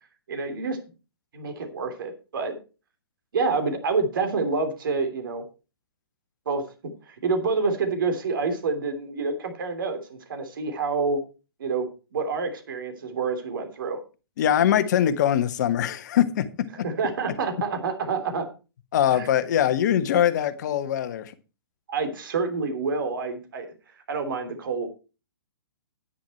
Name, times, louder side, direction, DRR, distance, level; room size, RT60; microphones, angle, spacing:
voice 1, 0.3-0.8 1.3-2.6 3.3-5.4 6.4-11.2 11.6-14.0 16.8-18.5 19.1-19.3 21.9-23.7 24.1-24.9, right 4 dB, 55° right, 3.1 m, -28 dB
voice 2, 14.4-16.4 18.9-21.3, left 10 dB, 45° left, 1.3 m, -22 dB
10.5 x 10.0 x 4.4 m
figure-of-eight pair, 120°, 13 cm